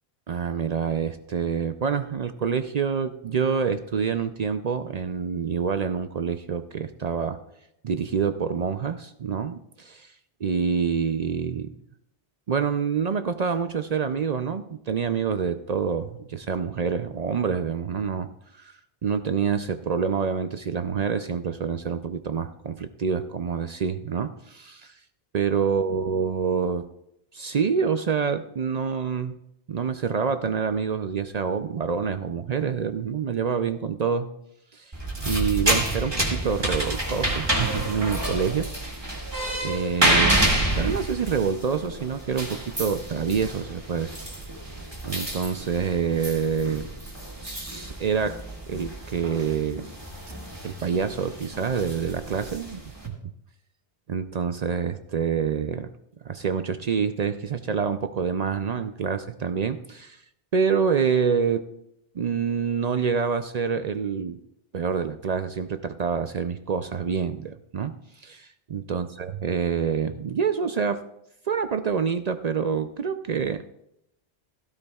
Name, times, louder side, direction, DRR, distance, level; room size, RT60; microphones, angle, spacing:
voice 1, 0.3-7.4 7.8-10.1 10.4-11.7 12.5-18.3 18.6-18.7 19.0-24.9 25.3-26.9 27.3-29.4 29.7-34.3 34.7-34.9 35.2-39.2 39.6-40.4 40.8-44.2 45.0-46.9 47.4-48.4 48.7-49.9 50.6-52.8 54.1-55.9 56.2-60.2 60.5-61.7 62.2-64.4 64.7-71.0 71.5-73.7, right 6 dB, 55° right, 10 dB, 0.5 m, -27 dB
sound 1, 34.9-53.1, right 1 dB, 25° right, 2.0 m, -29 dB
16.0 x 13.0 x 2.3 m, 0.80 s
omnidirectional pair, 1.1 m